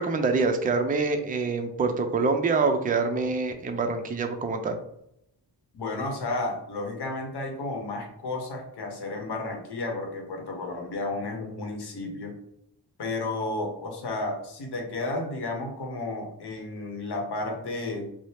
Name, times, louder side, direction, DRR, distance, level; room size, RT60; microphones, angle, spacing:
voice 1, 0.0-4.8, right 4 dB, 20° right, 6 dB, 0.3 m, -25 dB
voice 2, 5.7-12.3 13.0-18.1, left 2 dB, 65° left, 2 dB, 0.8 m, -32 dB
2.7 x 2.0 x 3.2 m, 0.77 s
cardioid pair, 55°, 43 cm